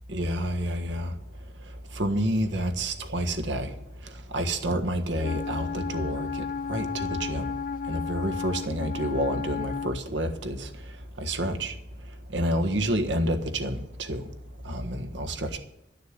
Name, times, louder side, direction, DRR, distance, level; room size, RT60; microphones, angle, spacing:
voice 1, 0.1-1.1 2.0-3.7 4.3-6.4 6.7-7.5 7.9-10.7 11.2-11.7 12.3-14.2 14.6-15.6, right 1 dB, 90° right, 5 dB, 1.5 m, -28 dB
Wind instrument woodwind instrument, 5.2-10.0, left 6 dB, 50° left, 0.4 m, -33 dB
11.5 x 6.7 x 9.5 m, 0.81 s
head